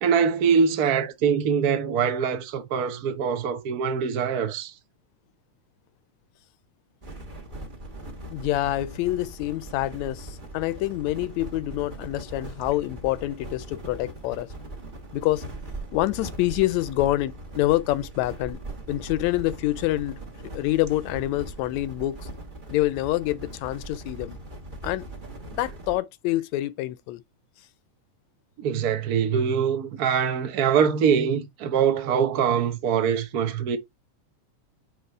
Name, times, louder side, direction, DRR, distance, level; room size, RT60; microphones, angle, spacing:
voice 1, 0.0-4.7 28.6-33.8, right 7 dB, 85° right, 0.8 m, -23 dB
sound 1, 7.0-25.9, right 1 dB, 55° right, 0.5 m, -40 dB
voice 2, 8.3-14.5 15.1-15.4 15.9-18.6 18.9-20.2 20.5-22.3 22.7-24.4 24.8-25.1 25.5-27.2, left 16 dB, 80° left, 1.7 m, -26 dB
9.4 x 3.2 x 4.8 m
omnidirectional pair, 3.4 m